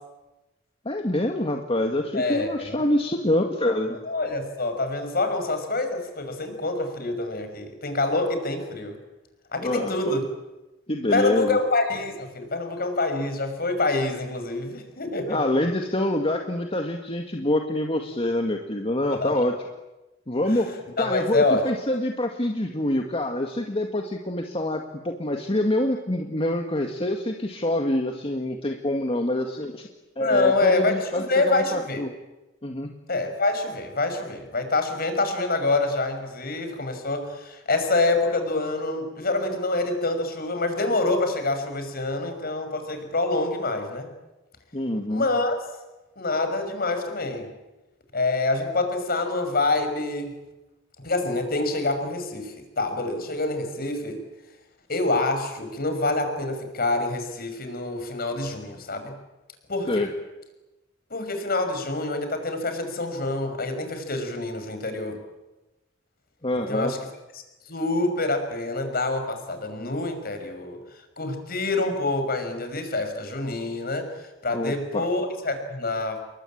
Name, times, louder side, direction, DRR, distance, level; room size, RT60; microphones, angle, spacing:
voice 1, 0.9-4.0 9.6-10.1 10.9-11.6 15.3-19.5 20.3-20.7 21.0-29.9 30.2-32.1 32.6-32.9 44.7-45.3 59.9-60.1 66.4-66.9 74.5-75.0, left 1 dB, 30° left, 3 dB, 2.0 m, -26 dB
voice 2, 2.1-2.8 4.0-9.0 9.5-10.2 11.1-15.4 19.2-19.4 20.5-20.7 21.0-21.7 30.2-32.0 33.1-44.1 45.1-45.6 46.2-47.5 48.1-50.3 51.0-54.2 54.9-59.1 59.7-60.1 61.1-65.2 66.7-67.0 67.7-70.8 71.2-76.3, left 2 dB, 50° left, 8 dB, 5.9 m, -26 dB
29.0 x 22.5 x 8.8 m, 1.0 s
head